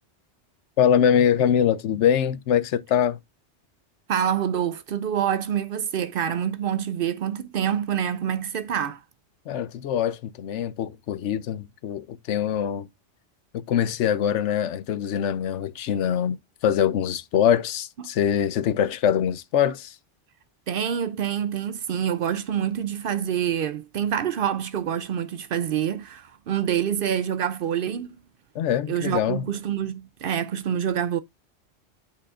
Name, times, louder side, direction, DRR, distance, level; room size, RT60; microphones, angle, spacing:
voice 1, 0.8-3.2 9.5-12.9 13.5-20.0 28.5-29.4, left 9 dB, 85° left, 1.0 m, -23 dB
voice 2, 4.1-9.0 20.7-28.2 28.9-31.2, right 9 dB, 60° right, 0.6 m, -26 dB
8.6 x 5.5 x 2.4 m
omnidirectional pair, 1.2 m